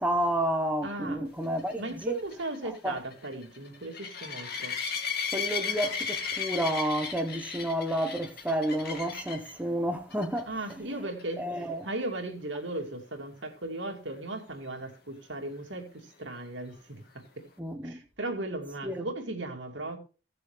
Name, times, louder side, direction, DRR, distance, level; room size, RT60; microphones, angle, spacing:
voice 1, 0.0-2.2 2.8-3.0 5.3-10.5 11.4-11.9 17.6-18.0 18.8-19.0, right 1 dB, 10° right, 0.9 m, -30 dB
voice 2, 0.8-1.3 1.8-4.8 10.5-17.4 17.8-20.0, right 2 dB, 80° right, 2.5 m, -37 dB
sound 1, 1.6-9.5 10.1-10.4 10.7-10.8 11.2-11.3 14.9-15.0, left 6 dB, 55° left, 2.0 m, -35 dB
16.5 x 6.8 x 3.4 m
head